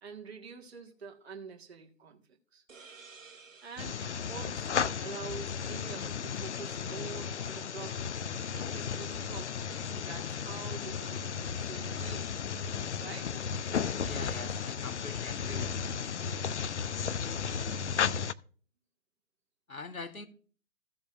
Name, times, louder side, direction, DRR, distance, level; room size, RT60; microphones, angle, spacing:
voice 1, 0.0-2.2 2.5-2.6 3.6-12.4 13.0-13.5 17.5-17.9, right 5 dB, 50° right, 1.7 m, -46 dB
sound 1, 2.7-6.1, right 5 dB, 65° right, 1.3 m, -56 dB
sound 2, 3.8-18.3, left 7 dB, 55° left, 0.5 m, -34 dB
voice 2, 14.1-16.0 19.7-20.3, left 3 dB, 85° left, 1.8 m, -43 dB
15.5 x 7.0 x 2.5 m
figure-of-eight pair, 140°, 41 cm